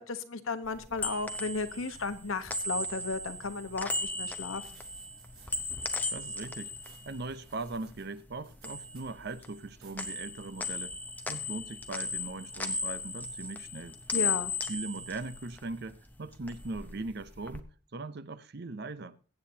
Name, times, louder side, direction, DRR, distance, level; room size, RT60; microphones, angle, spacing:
voice 1, 0.0-4.8 14.1-14.5, left 3 dB, 65° left, 1.1 m, -34 dB
sound 1, 0.7-8.0 8.3-9.7 10.0-16.0 16.3-17.6, left 3 dB, 10° left, 0.7 m, -37 dB
sound 2, 4.1-4.2 4.6-6.1 6.3-9.3 9.8-10.1, right 7 dB, 85° right, 5.4 m, -60 dB
voice 2, 6.1-6.7 7.0-11.0 11.3-14.0 14.7-19.2, right 3 dB, 50° right, 0.6 m, -40 dB
22.0 x 8.6 x 2.8 m
head